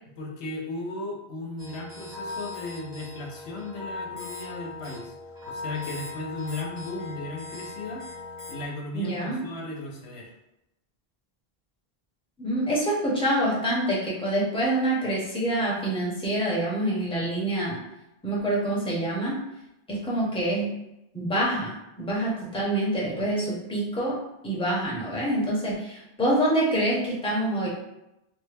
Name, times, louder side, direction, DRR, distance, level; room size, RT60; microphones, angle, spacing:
voice 1, 0.2-5.1 5.5-8.1 8.5-10.3 23.1-23.3, left 2 dB, 90° left, 0 dB, 1.0 m, -36 dB
sound 1, 1.6-8.6, left 3 dB, 50° right, 1.1 m, -39 dB
voice 2, 8.9-9.4 12.4-17.8 18.2-19.4 19.9-20.7 21.1-27.7, right 1 dB, 5° left, -5 dB, 0.7 m, -26 dB
3.2 x 2.2 x 3.3 m, 0.88 s
omnidirectional pair, 1.1 m